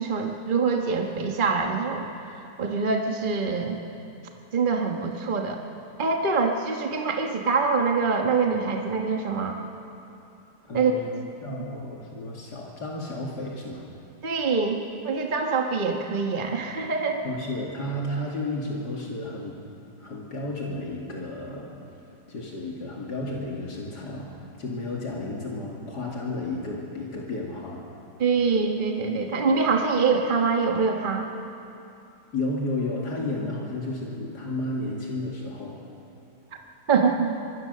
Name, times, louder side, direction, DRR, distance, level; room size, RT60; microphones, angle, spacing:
voice 1, 0.0-2.1 2.6-3.8 4.5-5.6 6.0-9.6 10.7-10.9 14.2-17.2 28.2-31.3 36.9-37.3, right 4 dB, 30° right, 2 dB, 1.4 m, -24 dB
voice 2, 10.6-13.9 17.2-19.6 20.0-21.7 22.3-27.8 32.3-35.8, left 2 dB, 75° left, -2 dB, 2.9 m, -32 dB
24.5 x 21.0 x 6.7 m, 2.7 s
omnidirectional pair, 1.8 m